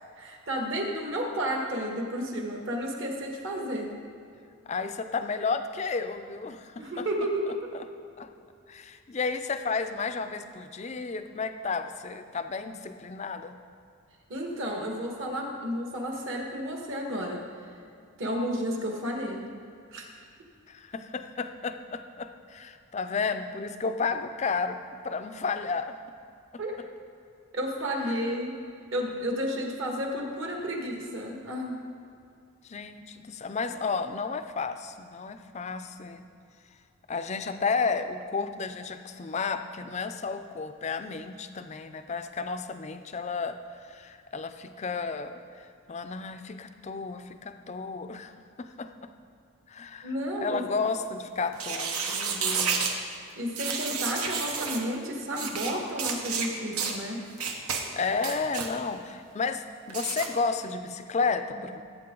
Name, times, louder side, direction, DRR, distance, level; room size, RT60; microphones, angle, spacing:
voice 1, 0.2-3.9 6.8-7.5 14.3-17.4 18.2-19.5 19.9-20.1 26.6-26.8 27.5-28.6 28.9-31.8 50.0-50.6 53.4-57.2, equal, 60° right, 1 dB, 1.6 m, -32 dB
voice 2, 4.7-7.1 7.7-7.8 8.2-8.3 8.7-13.6 20.7-25.9 28.1-28.4 32.6-36.3 37.1-48.3 48.6-48.9 49.7-50.1 50.4-53.0 57.9-61.8, left 4 dB, 30° left, 9 dB, 0.4 m, -32 dB
sound 1, 51.5-52.9 53.6-54.8 55.3-55.7 56.0-56.5 56.8-57.0 57.4-57.8 58.2-58.7 59.9-60.3, right 6 dB, 85° right, 1.2 m, -30 dB
17.0 x 8.3 x 3.8 m, 2.4 s
head